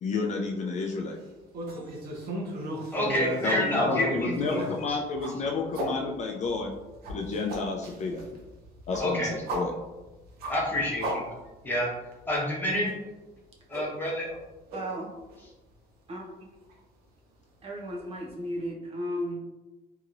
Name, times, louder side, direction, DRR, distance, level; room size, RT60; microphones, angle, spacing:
voice 1, 0.0-1.2 3.4-6.7 7.1-8.3 8.9-9.7, left 4 dB, 45° left, 1 dB, 0.4 m, -31 dB
sound 1, 1.5-5.9 6.4-11.8 12.1-12.2 12.6-12.9 13.7-14.4 14.7-14.8 15.3-15.4 16.7-16.8, equal, 65° right, 0.8 m, -35 dB
voice 2, 2.9-4.3 4.9-5.0 9.0-9.3 10.5-11.2 11.6-11.9 12.3-12.9 13.7-14.4, left 1 dB, 10° left, -5 dB, 1.0 m, -28 dB
voice 3, 14.7-15.1 16.1-16.4 17.6-19.5, equal, 35° right, -1 dB, 0.6 m, -34 dB
2.9 x 2.8 x 2.5 m, 1.1 s
cardioid pair, 110°, 17 cm